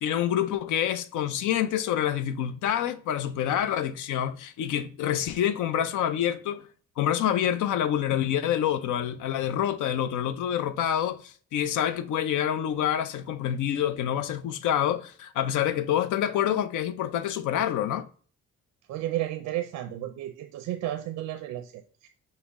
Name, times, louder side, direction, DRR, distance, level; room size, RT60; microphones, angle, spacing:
voice 1, 0.0-6.6 7.0-18.1, left 10 dB, 80° left, 0.5 m, -27 dB
voice 2, 18.9-22.1, right 13 dB, 80° right, 0.5 m, -33 dB
5.6 x 2.1 x 3.5 m
cardioid pair, 90°, 30 cm